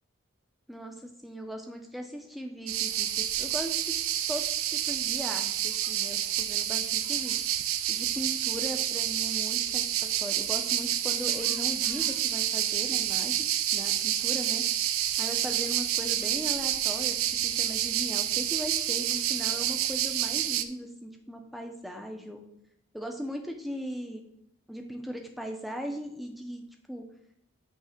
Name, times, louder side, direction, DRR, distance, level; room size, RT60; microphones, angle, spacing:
voice 1, 0.7-4.0 4.3-7.4 7.9-9.9 10.2-13.5 13.7-14.6 15.2-17.2 17.4-22.4 22.9-24.2 24.7-26.6 26.9-27.0, equal, ahead, 3 dB, 0.8 m, -38 dB
sound 1, 2.7-20.6, right 11 dB, 90° right, 0.5 m, -29 dB
8.3 x 3.5 x 5.1 m, 0.77 s
head